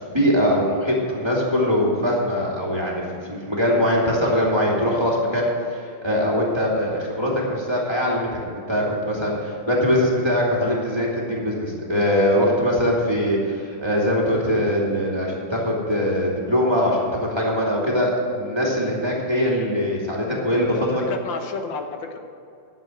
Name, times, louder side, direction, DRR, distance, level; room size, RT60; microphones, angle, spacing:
voice 1, 0.1-5.5 6.0-21.0, equal, 15° right, -4 dB, 2.5 m, -22 dB
voice 2, 20.7-22.2, left 4 dB, 80° left, 5 dB, 1.7 m, -31 dB
11.5 x 7.5 x 7.9 m, 2.6 s
omnidirectional pair, 2.1 m